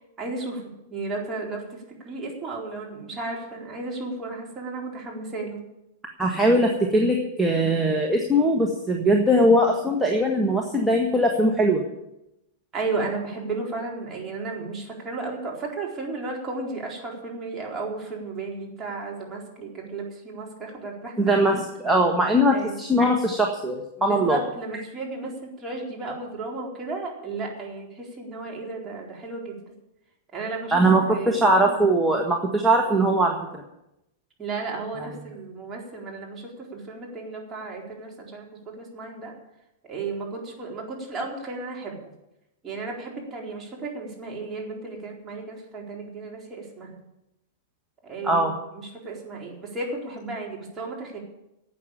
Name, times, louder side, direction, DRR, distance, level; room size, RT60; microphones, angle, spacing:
voice 1, 0.0-5.6 12.7-21.2 22.5-22.8 24.0-29.5 30.3-30.8 31.1-31.8 34.4-39.3 39.8-42.0 42.6-47.0 48.0-51.2, right 3 dB, 20° right, -2 dB, 4.1 m, -34 dB
voice 2, 6.2-11.8 21.2-24.4 30.7-33.3 48.2-48.5, right 1 dB, 5° right, 0 dB, 1.6 m, -21 dB
12.5 x 8.6 x 8.8 m, 0.89 s
figure-of-eight pair, 100°, 0 cm